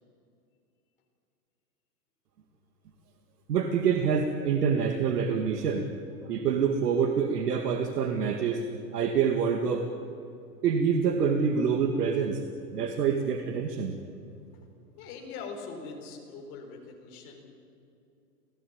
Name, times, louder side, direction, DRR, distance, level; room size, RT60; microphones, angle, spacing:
voice 1, 3.5-5.9 6.3-9.9 10.6-12.4 12.7-14.0, right 6 dB, 70° right, 5 dB, 2.1 m, -26 dB
voice 2, 15.0-17.5, left 4 dB, 25° left, 0 dB, 4.2 m, -42 dB
28.5 x 17.0 x 8.7 m, 2.6 s
supercardioid pair, 175°, 49 cm